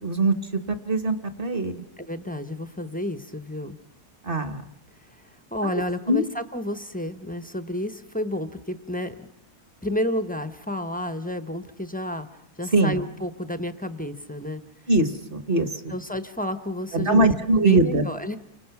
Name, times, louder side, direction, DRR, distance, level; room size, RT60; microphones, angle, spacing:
voice 1, 0.0-1.8 4.2-4.6 6.1-6.2 12.7-13.0 14.9-15.9 16.9-18.0, right 2 dB, 35° right, 9 dB, 1.3 m, -22 dB
voice 2, 2.0-3.8 5.1-5.2 5.5-9.3 9.8-12.3 12.6-14.6 15.9-17.3 17.6-18.4, left 1 dB, 10° left, 10 dB, 0.6 m, -30 dB
29.5 x 25.0 x 5.9 m, 0.79 s
omnidirectional pair, 1.7 m